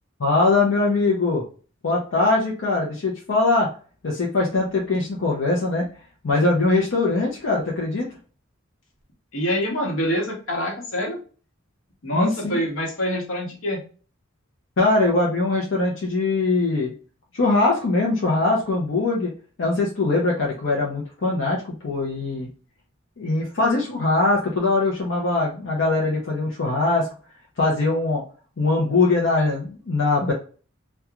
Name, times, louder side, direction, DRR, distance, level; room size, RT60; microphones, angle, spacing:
voice 1, 0.2-1.4 1.8-3.7 4.0-5.9 6.2-8.1 12.1-12.6 14.8-16.9 17.3-19.3 19.6-22.5 23.2-27.1 27.6-28.2 28.6-30.3, left 3 dB, 65° left, -3 dB, 0.6 m, -21 dB
voice 2, 9.3-11.2 12.0-13.8, equal, 85° left, -1 dB, 1.1 m, -25 dB
2.9 x 2.3 x 2.3 m, 0.38 s
head